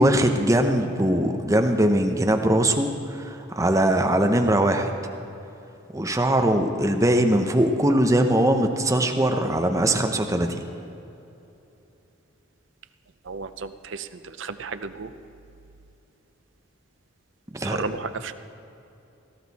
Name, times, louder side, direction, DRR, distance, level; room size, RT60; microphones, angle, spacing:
voice 1, 0.0-4.9 5.9-10.6 17.5-17.8, right 1 dB, 15° right, 5 dB, 0.7 m, -21 dB
voice 2, 13.3-13.7 14.4-15.1 17.7-18.3, right 5 dB, 70° right, 11 dB, 0.6 m, -32 dB
17.5 x 13.5 x 4.2 m, 2.9 s
head